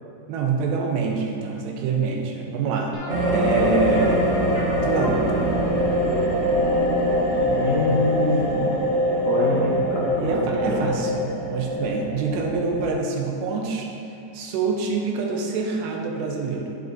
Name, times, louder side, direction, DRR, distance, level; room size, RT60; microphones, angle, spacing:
voice 1, 0.3-3.0 3.3-4.3 4.8-5.6 10.2-13.9 14.3-16.8, right 4 dB, 80° right, 1 dB, 2.8 m, -26 dB
sound 1, 2.9-9.8 10.1-10.2 10.7-10.9 11.1-11.2, left 1 dB, 65° left, 1.3 m, -37 dB
sound 2, 3.1-12.9, equal, 40° right, 1.3 m, -23 dB
voice 2, 7.5-8.6 9.3-10.8, left 2 dB, 85° left, -9 dB, 1.4 m, -25 dB
11.0 x 7.7 x 2.6 m, 2.7 s
omnidirectional pair, 5.1 m